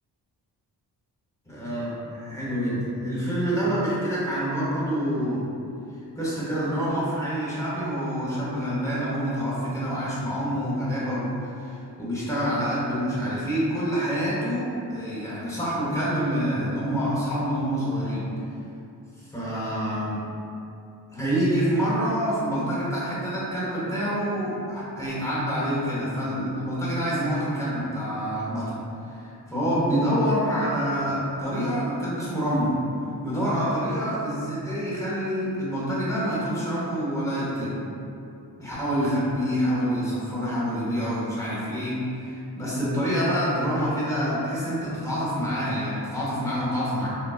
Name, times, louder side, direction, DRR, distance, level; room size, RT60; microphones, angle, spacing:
voice 1, 1.4-5.4 6.1-18.3 19.2-20.3 21.1-28.8 29.1-32.8 33.2-37.8 38.6-47.1, equal, 5° left, -9 dB, 1.1 m, -27 dB
4.0 x 2.0 x 2.4 m, 2.7 s
cardioid pair, 65°, 42 cm